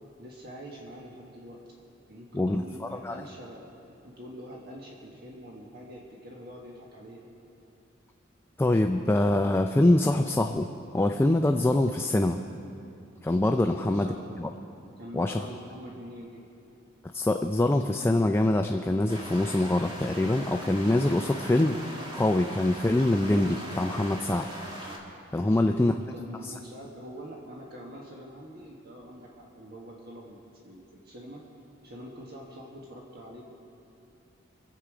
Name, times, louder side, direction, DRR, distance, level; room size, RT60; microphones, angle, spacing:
voice 1, 0.2-1.6 2.1-7.3 13.7-14.4 15.0-16.4 25.4-31.4 31.8-33.4, equal, 55° right, -2 dB, 1.5 m, -45 dB
voice 2, 8.6-10.7 10.9-12.4 13.2-14.5 15.1-15.4 17.1-21.8 22.1-24.5 25.3-25.9 26.4-26.5, left 1 dB, 10° left, 5 dB, 0.4 m, -24 dB
sound 1, 19.1-25.0, equal, 25° right, 1.8 m, -40 dB
24.0 x 8.2 x 4.9 m, 2.8 s
head